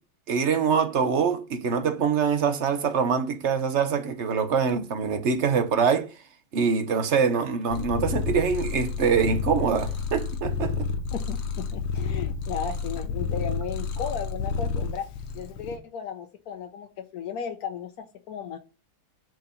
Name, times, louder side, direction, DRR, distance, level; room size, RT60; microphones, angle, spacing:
voice 1, 0.3-6.1 6.5-10.9, right 6 dB, 50° right, 0.9 m, -24 dB
Purr, 7.7-15.8, left 5 dB, 90° left, 1.9 m, -30 dB
voice 2, 11.1-15.1 15.3-18.6, left 7 dB, 65° left, 1.0 m, -35 dB
7.6 x 4.8 x 7.0 m
omnidirectional pair, 2.3 m